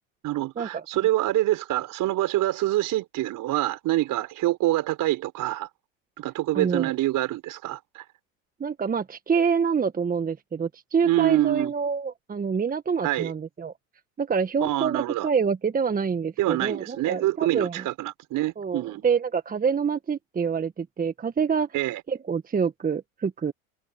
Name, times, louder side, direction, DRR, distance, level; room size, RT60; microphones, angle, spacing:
voice 1, 0.2-5.7 6.2-8.0 11.0-11.7 13.0-13.3 14.6-15.3 16.4-19.0 21.7-22.0, right 16 dB, 50° right, 5.0 m, -26 dB
voice 2, 6.5-6.9 8.6-13.7 14.2-17.8 18.6-21.7 22.1-23.5, right 6 dB, 20° right, 1.5 m, -26 dB
hypercardioid pair, 90°, 40 cm